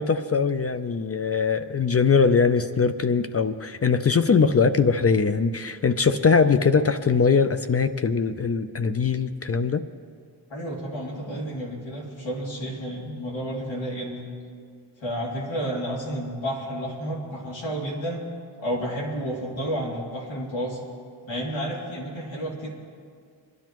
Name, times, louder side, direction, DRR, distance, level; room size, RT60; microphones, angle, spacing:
voice 1, 0.0-9.8, left 5 dB, 35° left, 10 dB, 0.5 m, -21 dB
voice 2, 10.5-14.3 15.0-18.2 18.6-20.8 21.3-22.7, equal, 80° left, -4 dB, 2.8 m, -31 dB
27.5 x 10.5 x 3.0 m, 2.1 s
cardioid pair, 70°, 45 cm